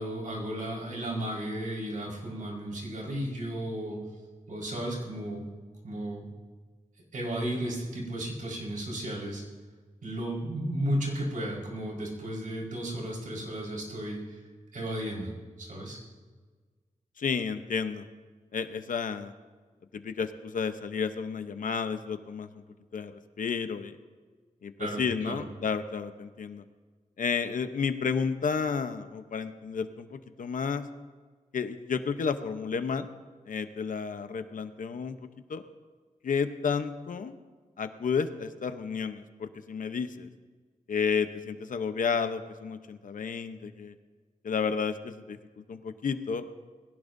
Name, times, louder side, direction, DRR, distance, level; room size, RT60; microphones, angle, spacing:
voice 1, 0.0-4.0 4.5-5.4 5.8-6.3 7.1-9.4 10.0-14.4 14.7-15.3 15.6-16.0 24.8-25.4, right 1 dB, 80° right, -3 dB, 4.8 m, -34 dB
voice 2, 17.2-18.1 18.5-19.3 19.9-22.6 22.9-24.0 24.6-26.6 27.2-30.9 31.5-33.1 33.5-35.6 36.2-37.4 37.8-40.3 40.9-43.9 44.4-45.4 45.7-46.4, left 6 dB, 75° left, 9 dB, 0.9 m, -31 dB
21.0 x 17.0 x 2.7 m, 1.4 s
wide cardioid pair, 110°, 14 cm